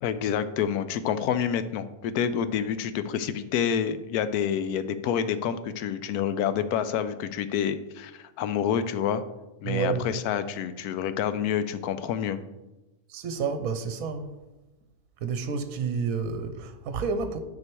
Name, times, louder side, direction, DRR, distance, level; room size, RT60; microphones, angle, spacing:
voice 1, 0.0-9.2 9.6-12.4, left 8 dB, 85° left, 1.1 m, -28 dB
voice 2, 9.6-10.1 13.1-14.4 15.2-17.4, right 5 dB, 70° right, 1.1 m, -29 dB
9.6 x 4.5 x 4.6 m
omnidirectional pair, 1.6 m